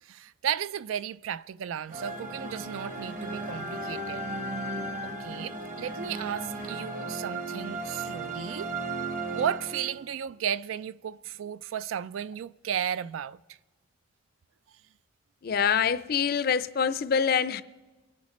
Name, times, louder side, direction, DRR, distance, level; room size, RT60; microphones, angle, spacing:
voice 1, 0.0-4.2 5.0-8.7 9.3-13.6, right 9 dB, 80° right, 0.3 m, -34 dB
sound 1, 1.9-10.2, right 2 dB, 40° right, 1.3 m, -35 dB
voice 2, 15.4-17.6, left 7 dB, 50° left, 0.4 m, -25 dB
24.5 x 10.5 x 3.1 m
head